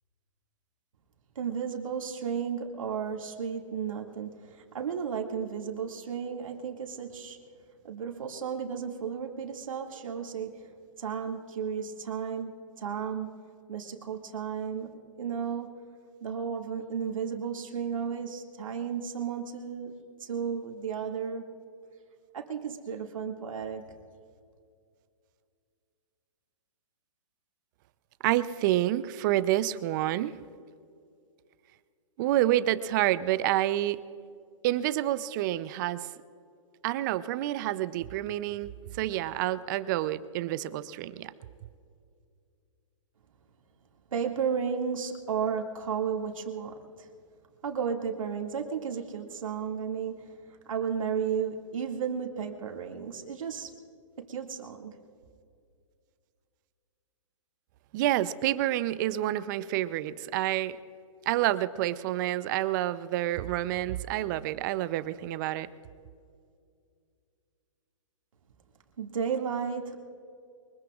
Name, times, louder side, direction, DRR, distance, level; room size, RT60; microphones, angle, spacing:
voice 1, 1.4-7.4 7.8-10.7 11.0-13.3 13.7-15.7 16.2-21.4 22.3-23.9 44.1-47.1 47.6-50.3 50.7-53.7 54.2-55.0 69.0-70.0, right 7 dB, 80° right, 2 dB, 2.2 m, -33 dB
voice 2, 28.2-30.4 32.2-34.0 34.6-36.1 36.8-41.3 57.9-60.8 61.3-65.7, right 14 dB, 35° right, 15 dB, 0.6 m, -28 dB
23.5 x 21.5 x 2.4 m, 2.3 s
hypercardioid pair, 140°, 17 cm